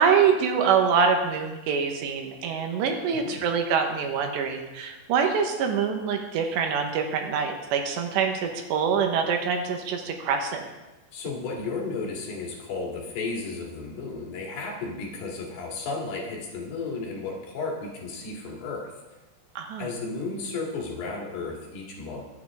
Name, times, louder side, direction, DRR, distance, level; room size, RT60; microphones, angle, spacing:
voice 1, 0.0-10.7 19.6-19.9, right 6 dB, 75° right, 4 dB, 3.3 m, -25 dB
voice 2, 3.1-3.4 11.1-18.9 19.8-22.2, left 3 dB, 65° left, -2 dB, 4.1 m, -33 dB
22.5 x 8.7 x 3.7 m, 1.1 s
omnidirectional pair, 5.1 m